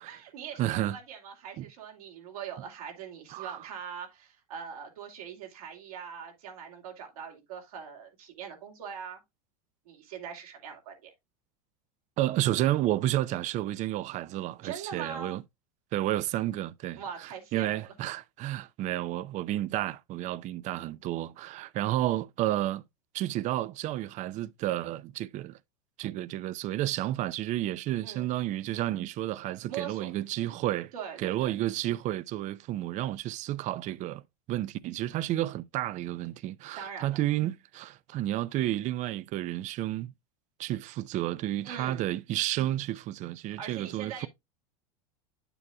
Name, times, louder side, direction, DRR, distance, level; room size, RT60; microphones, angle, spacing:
voice 1, 0.0-9.2 9.9-11.1 14.6-15.4 17.0-17.9 28.0-28.3 29.7-30.1 30.9-31.6 36.7-37.2 41.6-42.1 43.4-44.3, right 7 dB, 80° right, 2.5 m, -42 dB
voice 2, 0.6-1.0 1.6-1.7 3.3-3.6 12.2-15.4 15.9-17.0 17.5-22.8 23.1-25.6 26.0-30.9 31.2-34.2 34.5-40.1 40.6-44.3, right 14 dB, 40° right, 0.5 m, -31 dB
8.6 x 7.0 x 2.2 m
supercardioid pair, 110°, 19 cm